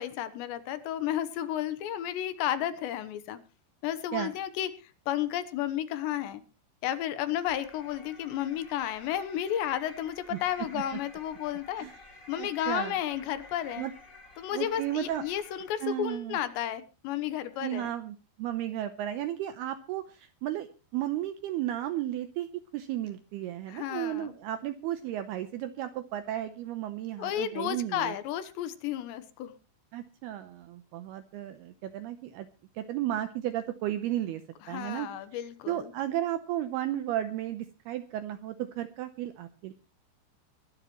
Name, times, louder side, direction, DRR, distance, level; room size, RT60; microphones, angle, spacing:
voice 1, 0.0-3.4 3.8-6.4 6.8-11.9 12.3-13.9 14.4-17.9 23.7-24.3 27.2-29.5 34.6-35.9, left 11 dB, 75° left, 12 dB, 3.0 m, -32 dB
sound 1, 7.5-16.0, left 3 dB, 35° left, 1.3 m, -52 dB
voice 2, 12.4-12.9 13.8-13.9 14.5-15.2 15.8-16.4 17.6-22.5 22.7-28.1 29.9-32.5 32.8-34.4 34.7-35.1 35.7-39.7, right 12 dB, 90° right, 10 dB, 2.2 m, -34 dB
23.5 x 11.0 x 3.1 m, 0.32 s
omnidirectional pair, 5.6 m